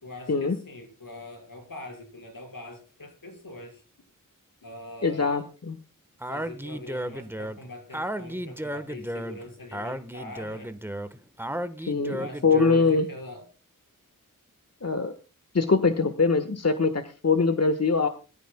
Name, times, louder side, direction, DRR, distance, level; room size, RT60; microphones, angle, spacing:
voice 1, 0.0-3.8 4.6-5.5 6.3-10.8 12.1-13.5, left 2 dB, 80° left, 2 dB, 5.0 m, -43 dB
voice 2, 5.0-5.8 11.8-12.2 12.4-13.1 14.8-15.1 15.5-18.1, left 4 dB, 50° left, 9 dB, 1.3 m, -23 dB
Speech, 6.2-13.0, right 1 dB, 5° right, 1.2 m, -34 dB
21.5 x 13.5 x 2.2 m, 0.33 s
wide cardioid pair, 55°, 33 cm